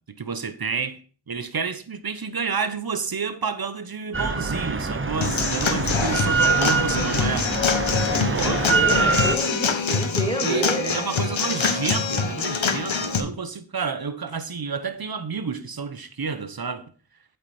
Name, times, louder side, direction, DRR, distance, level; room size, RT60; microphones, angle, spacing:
voice 1, 0.1-1.0 1.3-7.5 8.3-8.7 9.0-9.1 10.4-16.9, right 5 dB, 45° right, 1.2 m, -30 dB
Drill, 4.1-9.4, right 4 dB, 25° right, 0.9 m, -24 dB
Human voice / Acoustic guitar / Drum, 5.2-13.2, left 5 dB, 70° left, 1.3 m, -24 dB
voice 2, 8.4-11.0, right 1 dB, 10° left, 3.0 m, -30 dB
8.5 x 8.2 x 4.4 m
wide cardioid pair, 50°, 49 cm